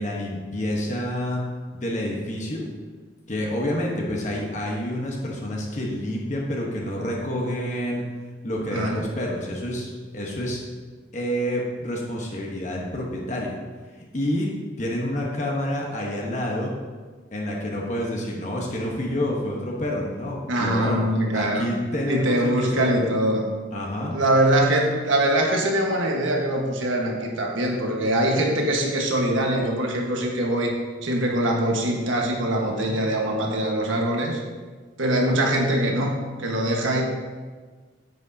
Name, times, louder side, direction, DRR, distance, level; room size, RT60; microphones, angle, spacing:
voice 1, 0.0-1.4 1.7-2.6 3.3-8.0 8.4-10.6 11.1-13.5 14.1-14.5 14.8-16.7 17.3-21.0 21.3-22.9 23.7-24.1 32.6-33.0 35.3-35.4, left 1 dB, 40° left, -2 dB, 1.1 m, -28 dB
voice 2, 8.6-9.0 20.5-21.7 22.1-23.4 24.1-30.7 31.0-34.4 35.0-37.0, right 1 dB, 85° right, 0 dB, 1.4 m, -23 dB
9.1 x 8.0 x 2.8 m, 1.4 s
head